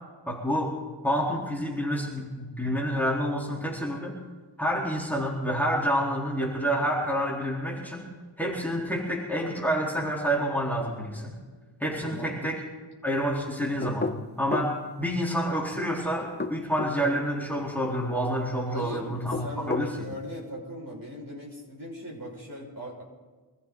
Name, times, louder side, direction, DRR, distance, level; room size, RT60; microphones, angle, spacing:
voice 1, 0.3-0.7 1.0-4.2 4.6-8.1 8.4-11.4 11.8-12.6 13.0-14.1 14.4-19.9, equal, 5° left, -4 dB, 4.1 m, -28 dB
voice 2, 12.0-12.4 18.7-23.0, equal, 45° right, -2 dB, 5.7 m, -39 dB
sound 1, 13.8-14.8 16.2-17.0 19.1-19.9, left 3 dB, 20° left, 0.7 m, -31 dB
24.5 x 14.5 x 4.0 m, 1.4 s
wide cardioid pair, 55°, 46 cm